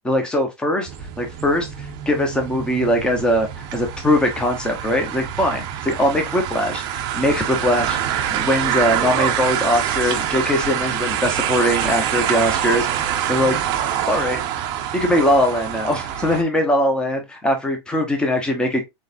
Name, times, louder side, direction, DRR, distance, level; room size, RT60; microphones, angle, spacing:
voice 1, 0.0-0.9 1.2-13.6 14.1-14.4 14.9-18.8, left 1 dB, 5° left, 0.8 m, -21 dB
sound 1, 0.9-16.4, right 10 dB, 30° right, 0.6 m, -25 dB
3.8 x 3.8 x 2.6 m
supercardioid pair, 155°, 14 cm